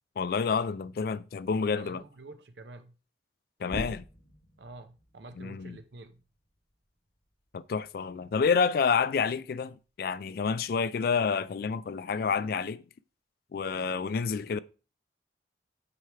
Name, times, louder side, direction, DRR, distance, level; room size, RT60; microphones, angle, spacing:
voice 1, 0.2-2.0 3.6-4.1 5.4-5.8 7.5-12.8 13.5-14.6, left 5 dB, 55° left, 0.3 m, -29 dB
voice 2, 1.7-2.9 4.6-6.2, right 2 dB, 75° right, 0.7 m, -48 dB
sound 1, 3.6-8.8 9.2-11.0, equal, 80° left, 2.8 m, -46 dB
7.7 x 4.7 x 3.4 m
head